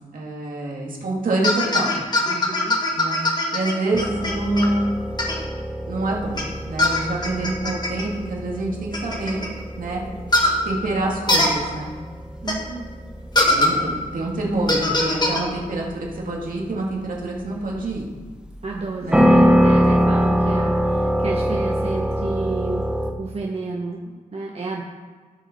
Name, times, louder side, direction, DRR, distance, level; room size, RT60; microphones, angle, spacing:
voice 1, 0.1-2.1 3.0-3.2 3.5-4.9 5.9-9.4 9.8-10.0 10.6-12.0 13.5-18.1 19.0-19.3, right 2 dB, 65° right, -2 dB, 2.4 m, -26 dB
sound 1, 1.4-4.7 5.2-5.4 6.4-6.5 6.8-8.0 8.9-9.5 10.3-10.6 11.3-11.5 12.5-12.6 13.4-13.7 14.7-15.4, left 2 dB, 30° left, 1.8 m, -21 dB
voice 2, 2.3-2.8 12.4-12.9 18.6-22.9 23.2-24.8, right 3 dB, 45° right, -1 dB, 1.1 m, -30 dB
sound 2, 3.9-23.1, equal, 5° right, 0.8 m, -24 dB
16.5 x 5.5 x 4.5 m, 1.5 s
wide cardioid pair, 100°, 15 cm